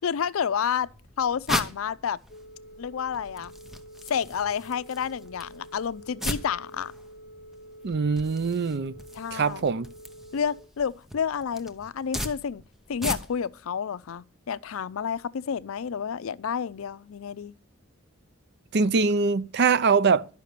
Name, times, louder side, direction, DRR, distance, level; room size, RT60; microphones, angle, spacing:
voice 1, 0.0-0.9 1.2-2.2 2.8-3.5 4.1-6.9 9.1-9.6 10.3-12.6 12.9-17.5, left 7 dB, 75° left, 0.4 m, -30 dB
sound 1, 0.8-13.6, equal, ahead, 0.8 m, -38 dB
Telephone, 2.3-10.6, right 1 dB, 45° left, 1.2 m, -48 dB
voice 2, 7.8-8.9 9.3-9.9 18.7-20.3, right 5 dB, 55° right, 0.5 m, -23 dB
11.5 x 5.8 x 6.7 m
head